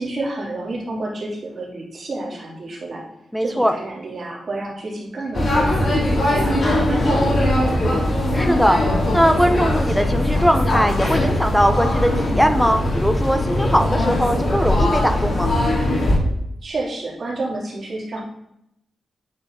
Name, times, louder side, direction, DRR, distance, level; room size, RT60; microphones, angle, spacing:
voice 1, 0.0-3.0 3.4-7.9 16.6-18.2, right 2 dB, 50° right, -4 dB, 3.1 m, -30 dB
voice 2, 3.3-3.7 8.3-8.8 9.1-15.5, equal, ahead, 7 dB, 0.8 m, -20 dB
sound 1, 5.3-16.2, left 1 dB, 55° left, 2.6 m, -20 dB
9.5 x 4.4 x 3.8 m, 0.80 s
cardioid pair, 80°, 0 cm